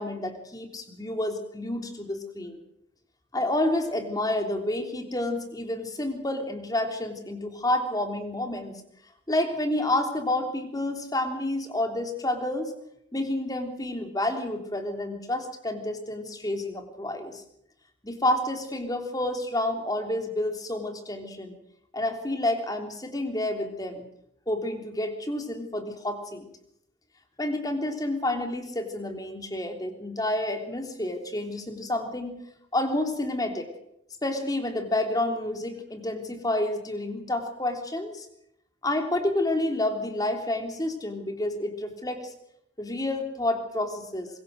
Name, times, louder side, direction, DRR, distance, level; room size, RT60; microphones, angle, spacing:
voice 1, 0.0-2.6 3.3-8.7 9.3-12.7 13.1-17.4 18.0-21.5 21.9-24.0 24.5-26.5 27.4-32.3 32.7-33.7 34.2-38.3 38.8-42.3 42.8-44.3, left 1 dB, 20° left, 6 dB, 3.3 m, -29 dB
24.5 x 22.5 x 6.5 m, 0.74 s
head